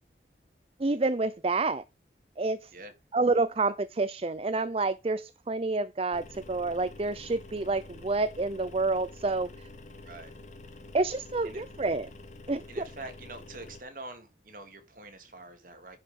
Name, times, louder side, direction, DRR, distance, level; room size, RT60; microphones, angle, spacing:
voice 1, 0.8-1.8 2.4-2.7 3.1-9.7 10.9-12.1 12.5-12.8, right 3 dB, 35° right, 0.5 m, -28 dB
sound 1, 6.1-13.8, left 2 dB, 40° left, 2.1 m, -48 dB
voice 2, 12.7-16.0, right 2 dB, 50° right, 2.6 m, -45 dB
10.0 x 5.5 x 5.3 m
head